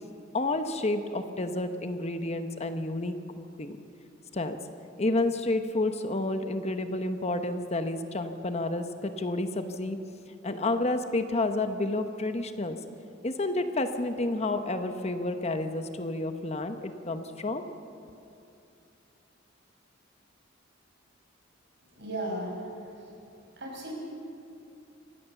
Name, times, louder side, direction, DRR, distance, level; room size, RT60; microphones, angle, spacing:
voice 1, 0.3-3.8 4.3-4.6 5.0-10.0 10.4-12.8 13.2-17.6, left 2 dB, 35° left, 8 dB, 1.0 m, -30 dB
voice 2, 22.0-23.1 23.6-23.9, right 1 dB, 60° right, 0 dB, 5.6 m, -36 dB
25.5 x 15.5 x 7.1 m, 2.6 s
head